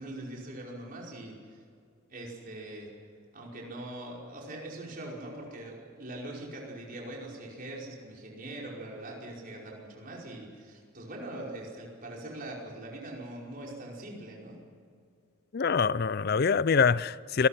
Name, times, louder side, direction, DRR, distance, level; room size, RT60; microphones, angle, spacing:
voice 1, 0.0-1.6 2.1-2.9 3.3-14.6, right 1 dB, 40° right, 5.1 m, -42 dB
voice 2, 15.5-17.5, left 5 dB, 45° left, 0.5 m, -25 dB
26.5 x 20.0 x 5.9 m
head